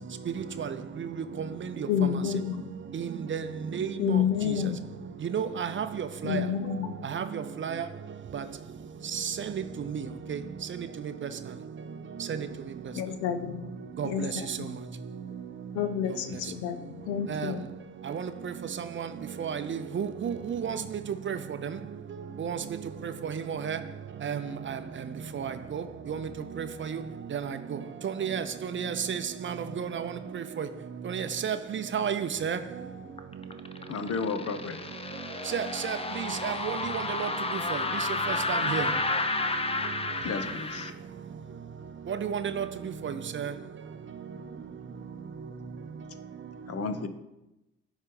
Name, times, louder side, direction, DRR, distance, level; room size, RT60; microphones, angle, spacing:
voice 1, 0.4-1.1 1.8-2.2 2.9-3.5 3.7-4.5 5.2-6.4 7.0-7.9 8.3-8.4 9.1-10.4 10.8-10.9 12.3-12.5 14.0-14.6 17.3-17.5 18.1-18.5 19.0-19.1 19.4-20.8 21.3-21.8 22.4-22.6 23.0-23.8 24.2-24.8 25.3-26.3 26.6-27.0 27.3-27.8 28.0-30.7 31.0-32.6 35.5-37.3 37.7-37.8 38.3-38.9 42.1-42.7 43.0-43.5, right 7 dB, 35° right, 0.6 m, -32 dB
voice 2, 1.9-2.6 4.0-4.8 6.2-6.9 12.9-13.6 14.0-14.8 15.7-17.6, left 8 dB, 75° left, 0.7 m, -29 dB
sound 1, 33.2-40.9, left 3 dB, 15° left, 0.7 m, -31 dB
voice 3, 33.9-34.8 40.2-40.9 46.7-47.1, left 4 dB, 45° left, 0.9 m, -33 dB
9.5 x 3.2 x 5.3 m
hypercardioid pair, 45°, 34 cm